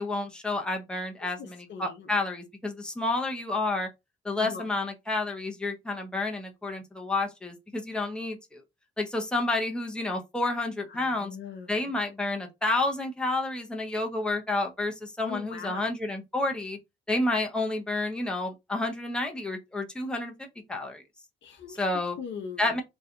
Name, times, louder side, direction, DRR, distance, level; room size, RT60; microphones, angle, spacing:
voice 1, 0.0-3.9 4.2-8.6 9.0-11.4 11.7-16.8 17.1-21.0 21.8-22.2 22.6-22.8, left 2 dB, 5° left, 0.6 m, -30 dB
voice 2, 1.2-2.2 4.4-4.7 10.9-11.9 15.2-15.9 21.4-21.9 22.2-22.8, left 6 dB, 65° left, 0.7 m, -41 dB
2.7 x 2.3 x 2.4 m
cardioid pair, 90°, 20 cm